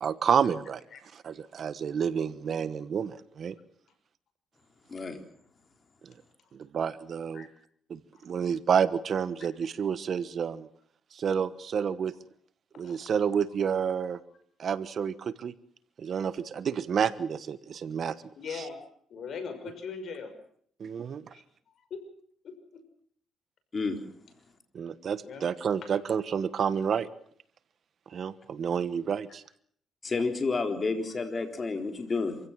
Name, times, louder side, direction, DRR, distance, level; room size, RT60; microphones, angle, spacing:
voice 1, 0.0-0.8 1.1-3.5 6.0-6.1 6.6-7.5 7.9-10.7 11.1-12.1 12.8-14.2 14.6-15.5 16.0-18.1 20.8-21.2 24.7-27.1 28.1-29.4, right 7 dB, 55° right, 15 dB, 1.2 m, -29 dB
voice 2, 1.9-2.3 7.3-7.5 12.8-13.0 18.4-18.8 19.1-20.3 21.3-21.4 21.9-22.0 22.4-22.5 25.2-25.5 25.8-25.9, left 5 dB, 60° left, 9 dB, 5.9 m, -40 dB
voice 3, 4.9-5.2 23.7-24.0 30.0-32.4, left 4 dB, 35° left, 6 dB, 4.0 m, -30 dB
27.0 x 16.0 x 7.5 m, 0.62 s
cardioid pair, 90°, 0 cm